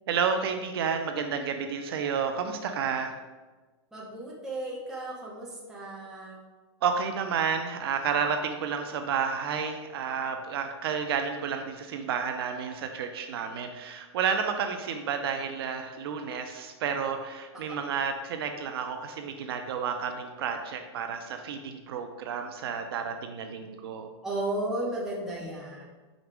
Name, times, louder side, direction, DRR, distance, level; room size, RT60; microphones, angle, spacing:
voice 1, 0.1-3.2 6.8-24.1, right 6 dB, 60° right, 6 dB, 0.5 m, -31 dB
voice 2, 3.9-6.4 24.2-25.9, right 1 dB, 5° right, -5 dB, 1.0 m, -34 dB
5.1 x 3.9 x 4.7 m, 1.3 s
supercardioid pair, 165°, 14 cm